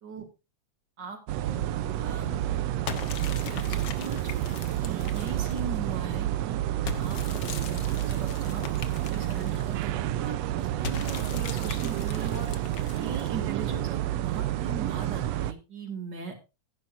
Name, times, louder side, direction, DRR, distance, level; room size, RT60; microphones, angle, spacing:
voice 1, 1.0-2.6 3.4-6.6 7.0-12.5 12.9-16.3, right 5 dB, 35° right, 6 dB, 3.0 m, -40 dB
sound 1, 1.3-15.5, right 13 dB, 75° right, 1.7 m, -29 dB
sound 2, 2.9-5.8 6.9-9.8 10.8-13.5, left 7 dB, 55° left, 1.4 m, -40 dB
16.0 x 10.5 x 2.6 m, 0.29 s
omnidirectional pair, 3.3 m